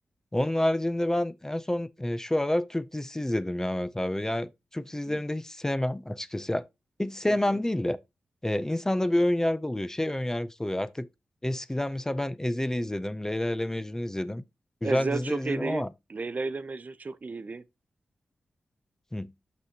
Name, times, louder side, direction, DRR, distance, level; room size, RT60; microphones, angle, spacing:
voice 1, 0.3-6.6 7.0-8.0 8.4-11.1 11.4-14.4 14.8-15.9 19.1-19.3, left 1 dB, 15° left, 0.5 m, -28 dB
voice 2, 7.3-7.6 14.8-17.6, right 4 dB, 45° right, 0.5 m, -33 dB
6.5 x 6.1 x 2.8 m
cardioid pair, 55°, 4 cm